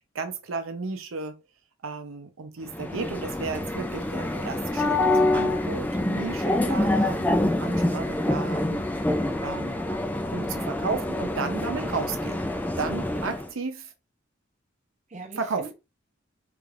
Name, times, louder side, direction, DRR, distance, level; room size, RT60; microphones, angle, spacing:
voice 1, 0.1-1.4 1.8-8.8 9.4-9.8 10.3-12.5 12.8-13.9 15.4-15.7, right 4 dB, 70° right, 0.7 m, -33 dB
sound 1, 2.7-13.5, left 1 dB, 10° left, 0.4 m, -26 dB
voice 2, 9.9-10.3 10.7-10.8 13.1-13.2 15.1-15.7, right 3 dB, 35° right, 0.8 m, -43 dB
3.3 x 3.3 x 2.5 m
head